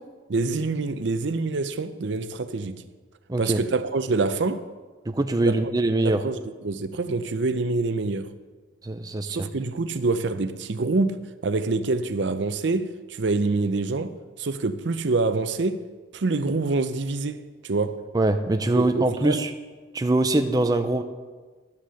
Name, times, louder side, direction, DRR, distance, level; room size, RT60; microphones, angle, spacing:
voice 1, 0.3-2.8 3.4-4.7 5.4-5.5 6.0-8.3 9.2-15.8 16.1-18.0 18.7-19.4, right 3 dB, 70° right, 0.6 m, -26 dB
voice 2, 3.3-3.6 5.1-6.2 8.8-9.5 18.1-19.5 19.9-21.0, right 2 dB, 20° right, 0.4 m, -23 dB
11.5 x 6.3 x 6.9 m
head